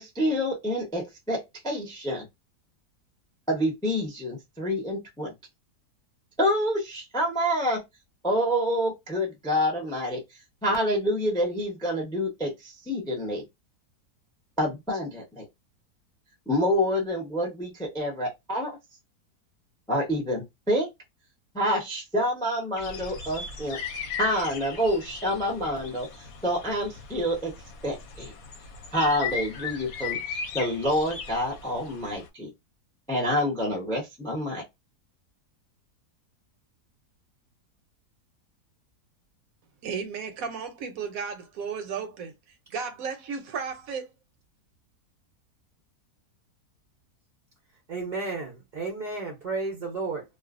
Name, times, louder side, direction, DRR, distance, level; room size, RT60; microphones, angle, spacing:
voice 1, 0.0-2.2 3.5-5.3 6.4-7.8 8.2-10.2 10.6-13.5 14.6-15.4 16.5-18.8 19.9-20.9 21.5-23.8 24.2-27.5 27.8-28.3 28.9-30.2 30.5-32.5 33.1-34.6, equal, 5° left, 0.4 m, -27 dB
sound 1, 22.8-32.3, left 6 dB, 70° left, 1.0 m, -37 dB
voice 2, 39.8-42.3 42.7-44.1, right 6 dB, 70° right, 0.9 m, -34 dB
voice 3, 47.9-50.2, right 3 dB, 50° right, 0.5 m, -32 dB
2.5 x 2.2 x 2.4 m
omnidirectional pair, 1.7 m